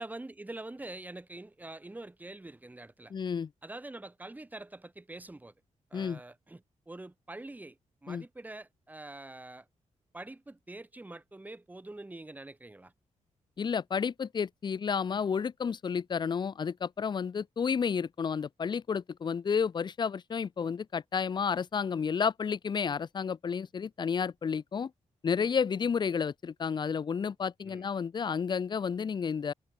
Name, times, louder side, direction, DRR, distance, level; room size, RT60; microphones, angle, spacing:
voice 1, 0.0-3.1 3.6-5.5 5.9-9.7 10.1-12.9 27.6-27.9, right 2 dB, 15° right, 3.3 m, -45 dB
voice 2, 3.1-3.5 5.9-6.2 8.1-8.2 13.6-24.9 25.2-29.5, left 6 dB, 40° left, 0.5 m, -31 dB
wide cardioid pair, 125°, 12 cm